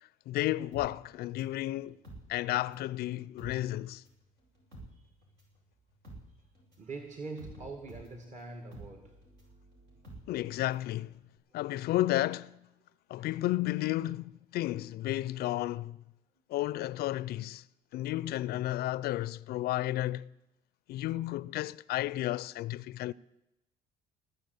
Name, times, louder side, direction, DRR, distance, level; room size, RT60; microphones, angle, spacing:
voice 1, 0.3-2.0 2.3-4.0 10.3-11.1 11.5-12.5 13.1-16.0 16.5-17.6 17.9-20.3 20.9-23.1, left 15 dB, 65° left, 0.4 m, -32 dB
sound 1, 0.7-2.9 3.2-10.9 11.2-11.3, right 1 dB, 80° right, 6.5 m, -51 dB
voice 2, 6.8-9.3 11.5-11.6 13.2-13.3, right 3 dB, 45° right, 2.1 m, -44 dB
20.0 x 6.9 x 8.2 m
supercardioid pair, 70°, 17 cm